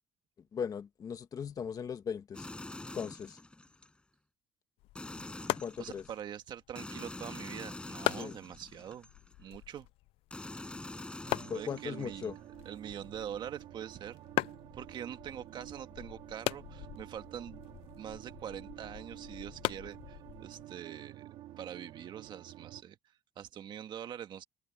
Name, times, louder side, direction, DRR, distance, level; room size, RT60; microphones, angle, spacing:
voice 1, 0.5-2.5 2.9-3.4 5.6-6.0 8.2-8.4 11.5-12.3, left 7 dB, 40° left, 1.6 m, -38 dB
sound 1, 2.3-3.9 4.9-6.1 6.8-9.3 10.3-12.3, left 2 dB, 10° left, 7.7 m, -45 dB
sound 2, 4.8-20.6, left 19 dB, 90° left, 0.4 m, -41 dB
voice 2, 5.8-9.1 9.4-9.9 11.5-14.2 14.7-17.6 18.0-21.3 21.6-23.0 23.3-24.4, right 9 dB, 55° right, 1.6 m, -44 dB
sound 3, 11.2-22.8, right 14 dB, 85° right, 1.9 m, -50 dB
cardioid pair, 130°, 9 cm